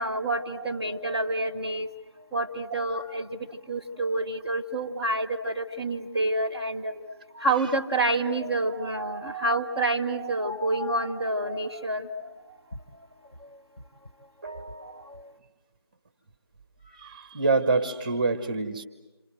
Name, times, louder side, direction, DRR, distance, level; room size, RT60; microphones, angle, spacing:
voice 1, 0.0-1.9 2.3-6.9 7.4-13.1 13.4-13.6 14.8-15.3, right 2 dB, 15° left, -4 dB, 0.9 m, -28 dB
voice 2, 14.4-15.1 16.8-18.8, right 3 dB, 20° right, 11 dB, 1.2 m, -28 dB
28.0 x 26.5 x 7.8 m, 1.1 s
figure-of-eight pair, 165°, 14 cm